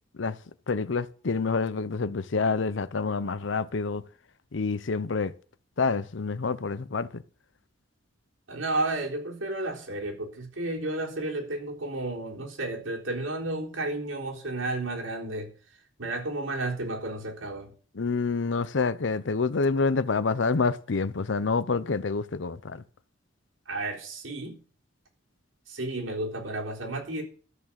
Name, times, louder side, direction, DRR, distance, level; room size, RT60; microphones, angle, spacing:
voice 1, 0.7-4.0 4.5-5.3 5.8-7.2 17.9-22.8, left 4 dB, 70° left, 0.7 m, -27 dB
voice 2, 8.5-15.5 16.0-17.7 23.7-24.6 25.7-27.2, right 2 dB, 90° right, 3.8 m, -32 dB
13.0 x 6.4 x 7.4 m
head